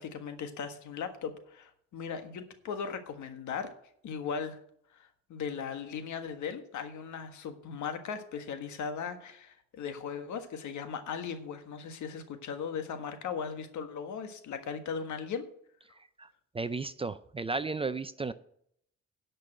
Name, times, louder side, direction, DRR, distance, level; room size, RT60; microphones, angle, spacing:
voice 1, 0.0-3.7 4.0-4.6 4.9-15.4, left 6 dB, 70° left, 8 dB, 1.6 m, -38 dB
voice 2, 16.2-18.3, right 3 dB, 20° right, 13 dB, 0.5 m, -34 dB
10.5 x 5.4 x 7.7 m, 0.68 s
cardioid pair, 90°, 30 cm